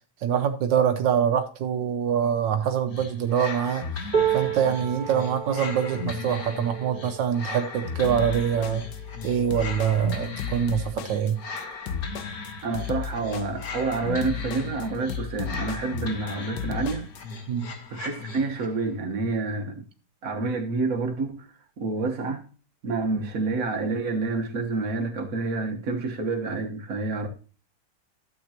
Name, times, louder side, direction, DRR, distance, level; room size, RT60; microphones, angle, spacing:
voice 1, 0.2-8.8 9.2-11.4 17.5-17.7, right 8 dB, 85° right, 1.4 m, -25 dB
sound 1, 2.9-18.8, left 4 dB, 55° left, 1.7 m, -37 dB
sound 2, 4.1-10.3 10.9-11.1 11.3-12.1 13.1-13.2, right 8 dB, 20° right, 2.5 m, -32 dB
sound 3, 8.0-17.2, left 8 dB, 80° left, 1.4 m, -35 dB
voice 2, 12.6-17.0 17.9-19.8 20.2-21.5 21.8-22.4 22.8-27.3, right 3 dB, 50° right, 1.7 m, -28 dB
12.0 x 7.7 x 2.9 m
omnidirectional pair, 1.9 m